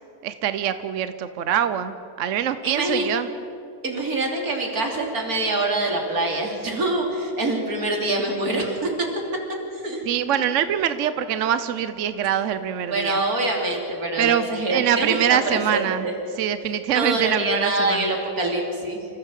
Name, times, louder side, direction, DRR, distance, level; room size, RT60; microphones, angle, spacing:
voice 1, 0.2-3.3 10.1-13.2 14.2-16.1 16.4-18.1, right 9 dB, 65° right, 11 dB, 1.0 m, -24 dB
voice 2, 2.6-3.1 3.8-9.1 9.7-10.0 12.9-16.1 16.9-19.1, right 2 dB, 80° right, 1 dB, 3.4 m, -25 dB
26.5 x 15.0 x 7.4 m, 3.0 s
omnidirectional pair, 1.5 m